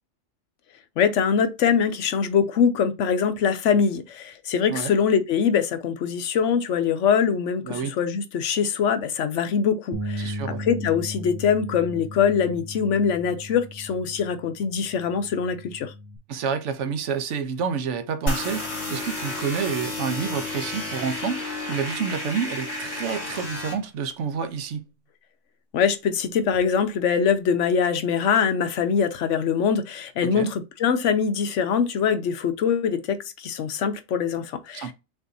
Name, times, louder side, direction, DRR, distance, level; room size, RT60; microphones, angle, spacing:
voice 1, 1.0-15.9 25.7-34.9, left 7 dB, 80° left, 1.0 m, -23 dB
voice 2, 7.7-8.0 10.2-10.6 16.3-24.9 30.2-30.5 34.7-34.9, right 6 dB, 80° right, 1.0 m, -29 dB
Bass guitar, 9.9-16.2, equal, 35° right, 0.4 m, -36 dB
sound 1, 18.3-23.7, left 2 dB, 65° left, 2.7 m, -31 dB
6.2 x 2.6 x 2.6 m
omnidirectional pair, 1.2 m